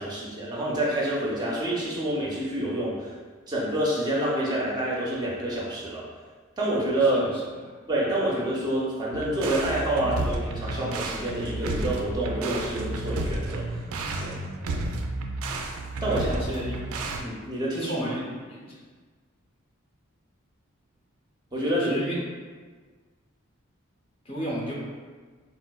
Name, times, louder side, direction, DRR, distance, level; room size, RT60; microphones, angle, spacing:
voice 1, 0.0-3.2 3.5-6.0 6.6-7.3 7.9-13.8 14.2-14.4 16.0-16.6 17.2-17.9 21.5-21.9, right 1 dB, 20° right, -5 dB, 0.4 m, -27 dB
sound 1, 9.1-17.2, right 2 dB, 85° right, 0.3 m, -31 dB
voice 2, 16.1-16.8 17.8-18.7 21.7-22.2 24.3-24.7, equal, 30° left, -4 dB, 0.6 m, -33 dB
4.1 x 2.1 x 2.2 m, 1.5 s
head